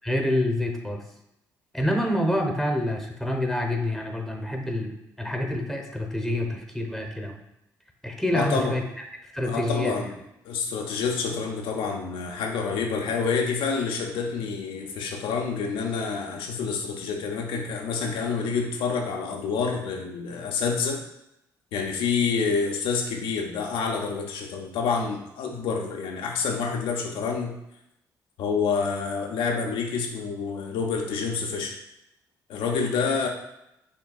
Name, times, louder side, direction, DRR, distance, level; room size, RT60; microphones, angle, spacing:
voice 1, 0.0-1.0 1.7-7.4 8.0-8.8 9.2-9.9, left 1 dB, ahead, 3 dB, 0.9 m, -27 dB
voice 2, 8.3-8.7 9.4-10.1 10.4-21.0 21.7-27.5 28.4-31.7 32.5-33.3, left 5 dB, 70° left, 1 dB, 0.6 m, -28 dB
6.6 x 2.3 x 2.4 m, 0.84 s
hypercardioid pair, 50°, 9 cm